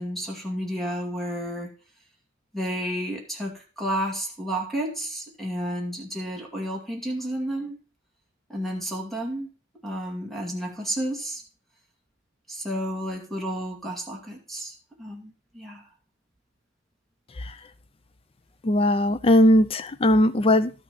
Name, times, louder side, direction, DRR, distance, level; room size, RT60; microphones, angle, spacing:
voice 1, 0.0-1.7 2.5-7.8 8.5-9.5 9.8-11.4 12.5-15.8, equal, ahead, -1 dB, 2.3 m, -31 dB
voice 2, 18.6-20.7, left 1 dB, 30° left, 13 dB, 0.5 m, -19 dB
12.0 x 6.3 x 4.1 m, 0.34 s
head